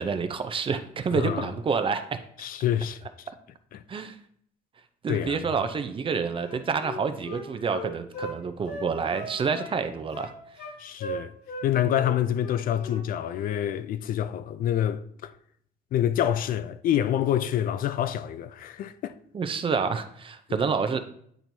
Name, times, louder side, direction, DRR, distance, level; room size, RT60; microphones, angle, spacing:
voice 1, 0.0-2.2 3.9-4.2 5.0-10.3 19.3-21.0, right 5 dB, 30° right, 0.6 m, -28 dB
voice 2, 1.1-1.5 2.4-3.3 3.7-3.8 5.1-5.4 10.8-11.3 11.6-15.3 15.9-19.2, left 10 dB, 55° left, 0.4 m, -27 dB
Wind instrument woodwind instrument, 6.4-8.3 8.7-9.8 10.1-10.7 11.0-11.7 11.9-12.1 12.4-13.0 13.3-13.5, left 1 dB, 80° left, 2.5 m, -37 dB
9.0 x 4.4 x 2.7 m
cardioid pair, 110°, 17 cm